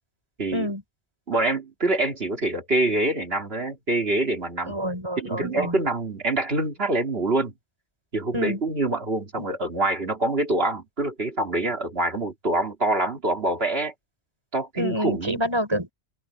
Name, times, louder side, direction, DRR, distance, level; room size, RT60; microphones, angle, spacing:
voice 1, 0.5-0.8 4.7-5.8 8.3-8.6 9.3-9.5 14.8-15.9, equal, 25° right, 4.6 m, -27 dB
voice 2, 1.3-4.8 5.2-7.5 8.1-13.9 14.5-15.4, right 2 dB, 60° right, 3.1 m, -25 dB
open air
omnidirectional pair, 1.1 m